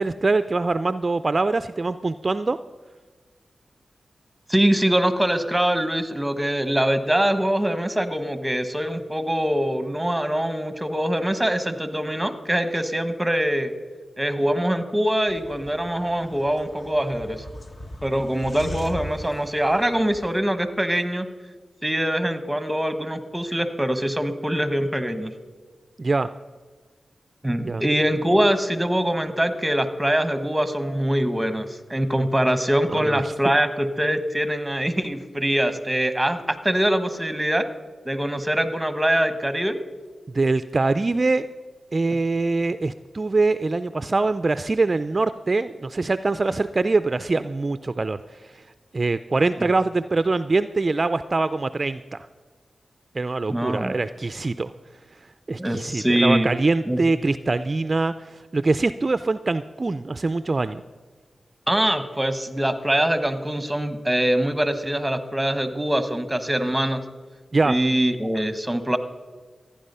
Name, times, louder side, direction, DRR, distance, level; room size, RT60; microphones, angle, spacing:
voice 1, 0.0-2.6 26.0-26.3 27.7-27.8 32.9-33.5 40.3-41.5 41.9-48.6 48.9-52.3 53.1-54.7 55.5-60.8 67.5-67.8, right 3 dB, 45° right, 12 dB, 0.4 m, -23 dB
voice 2, 4.5-13.7 14.2-17.4 18.0-21.3 21.8-25.3 27.4-37.6 38.0-39.8 53.5-53.9 55.6-56.5 56.9-57.0 61.7-67.0 67.6-69.0, right 1 dB, 10° right, 10 dB, 1.2 m, -23 dB
sound 1, 15.3-20.4, left 1 dB, 40° left, 1.3 m, -39 dB
14.5 x 9.9 x 5.5 m, 1.4 s
cardioid pair, 55°, 0 cm